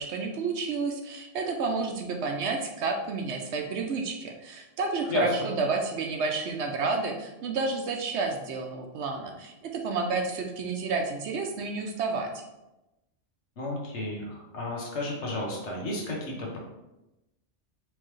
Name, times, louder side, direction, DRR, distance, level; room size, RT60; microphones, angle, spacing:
voice 1, 0.0-12.4, right 4 dB, 70° right, 4 dB, 0.8 m, -30 dB
voice 2, 13.6-16.6, left 1 dB, 65° left, -1 dB, 1.3 m, -32 dB
4.5 x 3.3 x 3.1 m, 0.96 s
omnidirectional pair, 1.3 m